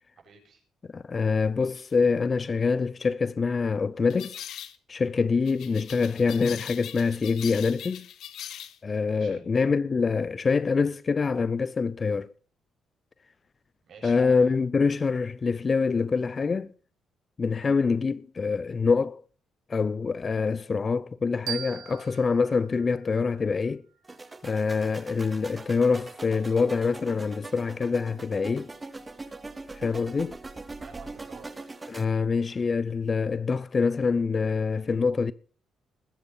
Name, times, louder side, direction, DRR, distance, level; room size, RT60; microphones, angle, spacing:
voice 1, 0.2-0.6 9.1-9.4 13.9-14.6 30.8-31.5, right 5 dB, 55° right, 7.7 m, -48 dB
voice 2, 0.9-4.4 4.9-8.1 8.8-12.3 14.0-16.7 17.4-19.2 19.7-23.8 24.4-28.7 29.7-30.4 31.9-35.3, left 5 dB, 35° left, 0.6 m, -25 dB
sound 1, 1.7-1.9 4.1-4.8 5.4-8.8, left 10 dB, 75° left, 1.5 m, -41 dB
sound 2, 21.5-24.3, right 11 dB, 90° right, 1.4 m, -41 dB
sound 3, 24.0-32.0, right 3 dB, 20° right, 2.2 m, -42 dB
20.5 x 8.8 x 5.5 m
cardioid pair, 90°, 0 cm